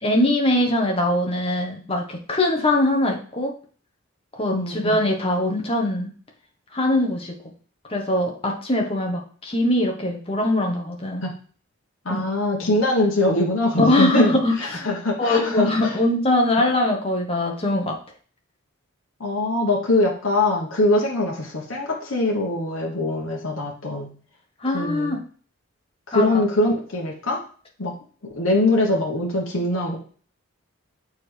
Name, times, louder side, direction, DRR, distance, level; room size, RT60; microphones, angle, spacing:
voice 1, 0.0-3.5 4.3-6.1 6.7-7.3 7.9-11.2 12.1-12.2 13.8-14.9 15.2-18.0 24.6-25.2 26.1-26.3, left 1 dB, 25° left, 1 dB, 1.1 m, -22 dB
voice 2, 4.5-5.0 11.2-11.3 12.0-15.9 19.2-24.1 24.7-25.2 26.1-27.4 27.8-27.9 28.3-30.0, left 2 dB, 65° left, -2 dB, 1.2 m, -23 dB
6.8 x 4.8 x 3.3 m, 0.43 s
head